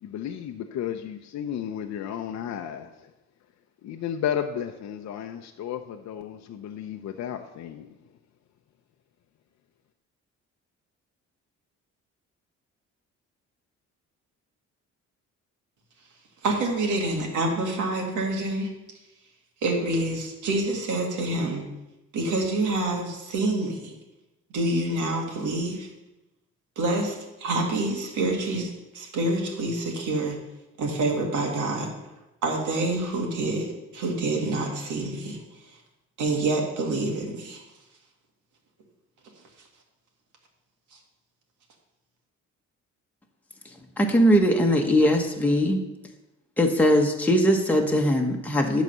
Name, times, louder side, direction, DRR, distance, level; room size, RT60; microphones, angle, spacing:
voice 1, 0.0-3.1 3.8-7.9, left 9 dB, 65° left, 5 dB, 0.6 m, -33 dB
voice 2, 16.4-18.7 19.6-21.6 22.1-23.9 24.5-25.9 26.8-30.4 30.8-31.9 32.4-33.7 33.9-35.4 36.2-37.6, right 2 dB, 75° right, 1 dB, 2.1 m, -27 dB
voice 3, 44.0-45.8 46.6-48.8, equal, 5° left, 1 dB, 1.2 m, -20 dB
11.0 x 4.1 x 6.7 m, 0.98 s
cardioid pair, 90°, 30 cm